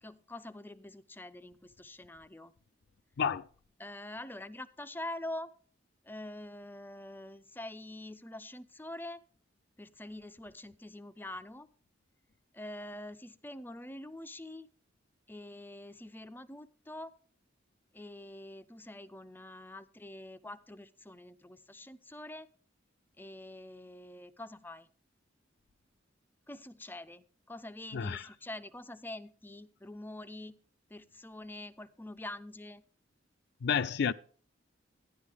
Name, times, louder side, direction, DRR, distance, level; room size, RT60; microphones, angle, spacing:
voice 1, 0.0-2.5 3.8-5.5 6.0-9.2 9.8-11.7 12.5-14.7 15.3-17.1 17.9-22.5 23.2-24.9 26.5-30.6 30.9-32.8, left 1 dB, 10° left, 0.5 m, -45 dB
voice 2, 27.9-28.2 33.6-34.1, left 6 dB, 60° left, 0.4 m, -30 dB
11.5 x 11.0 x 3.5 m
head